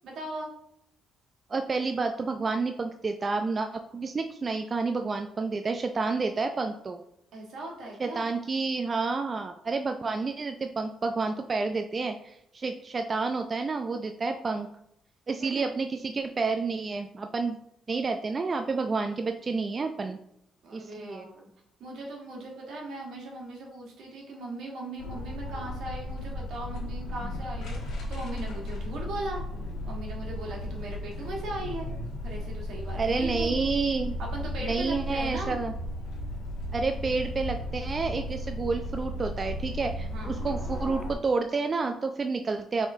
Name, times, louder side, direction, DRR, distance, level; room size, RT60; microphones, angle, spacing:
voice 1, 0.0-0.5 7.3-8.3 15.4-15.7 20.6-21.5 21.8-29.4 29.8-31.9 32.2-33.6 34.2-35.6 40.1-40.3, right 2 dB, 75° right, -1 dB, 1.4 m, -38 dB
voice 2, 1.5-7.0 8.0-14.7 15.3-17.6 17.9-20.2 20.7-21.3 33.0-34.2 34.6-35.7 36.7-42.9, right 4 dB, 35° right, 6 dB, 0.3 m, -29 dB
sound 1, 25.0-41.1, left 1 dB, 85° left, 1.2 m, -35 dB
5.6 x 3.6 x 2.7 m, 0.76 s
cardioid pair, 90°, 0 cm